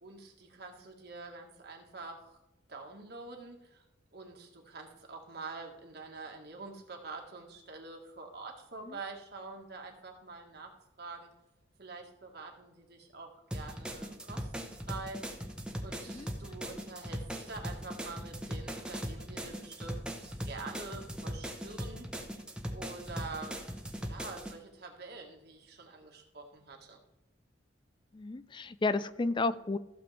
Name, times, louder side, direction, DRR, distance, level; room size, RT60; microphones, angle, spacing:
voice 1, 0.0-2.4 2.7-3.8 4.1-10.7 11.0-11.3 11.8-15.2 15.8-22.1 22.7-23.6 24.0-27.0, right 3 dB, 55° right, 2 dB, 1.7 m, -46 dB
sound 1, 13.5-24.5, equal, 5° right, 1.0 m, -40 dB
voice 2, 28.1-29.8, left 3 dB, 25° left, 15 dB, 0.4 m, -32 dB
15.0 x 7.0 x 3.4 m, 1.0 s
head